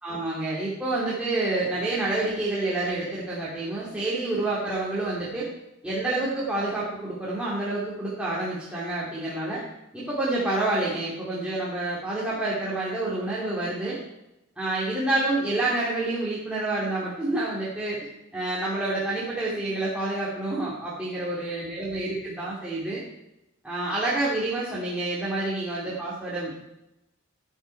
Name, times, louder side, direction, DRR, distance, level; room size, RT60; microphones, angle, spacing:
voice 1, 0.0-5.5 5.8-9.6 9.9-14.0 14.6-18.0 18.3-23.0 23.6-26.6, right 2 dB, 5° right, -8 dB, 2.7 m, -28 dB
14.5 x 9.8 x 4.6 m, 0.90 s
head